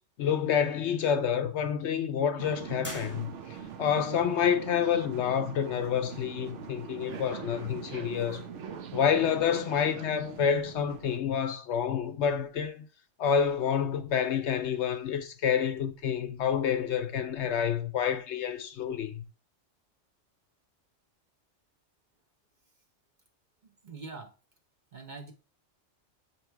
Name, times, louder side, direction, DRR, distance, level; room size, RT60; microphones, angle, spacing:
voice 1, 0.2-8.4 8.9-12.9 13.2-19.2, left 8 dB, 65° left, 0.8 m, -28 dB
sound 1, 2.4-11.2, right 7 dB, 65° right, 1.0 m, -42 dB
sound 2, 2.8-3.8, equal, 10° right, 1.6 m, -43 dB
voice 2, 23.6-24.3 24.9-25.3, right 3 dB, 40° right, 0.9 m, -44 dB
7.1 x 3.0 x 4.5 m
omnidirectional pair, 1.3 m